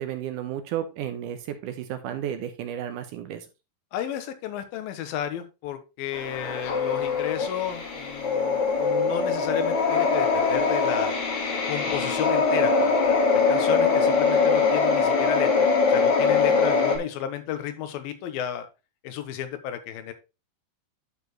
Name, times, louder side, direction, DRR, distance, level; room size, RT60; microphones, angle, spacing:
voice 1, 0.0-3.5, right 10 dB, 75° right, 9 dB, 2.1 m, -33 dB
voice 2, 3.9-11.1 11.7-18.7 19.0-20.1, left 10 dB, 90° left, 9 dB, 2.8 m, -33 dB
sound 1, 6.1-17.0, left 4 dB, 60° left, 2.8 m, -22 dB
12.0 x 4.7 x 3.1 m, 0.28 s
omnidirectional pair, 4.1 m